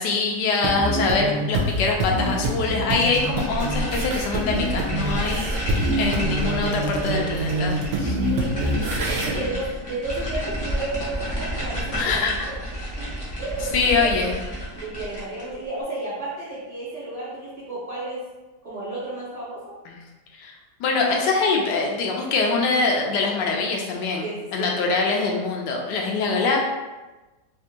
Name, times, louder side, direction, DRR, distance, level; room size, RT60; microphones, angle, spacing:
voice 1, 0.0-8.2 9.3-9.5 12.0-12.3 13.7-14.4 19.9-20.0 20.3-20.5 20.8-26.7, left 4 dB, 75° left, 1 dB, 1.1 m, -24 dB
sound 1, 0.6-9.3, right 1 dB, 80° right, 1.2 m, -26 dB
sound 2, 3.2-15.5, equal, 30° left, 0.6 m, -31 dB
voice 2, 8.0-12.6 13.0-13.1 13.4-14.1 14.8-18.2 18.6-19.7 24.2-24.8, right 2 dB, 45° right, -10 dB, 1.2 m, -33 dB
3.4 x 2.4 x 2.8 m, 1.1 s
omnidirectional pair, 1.9 m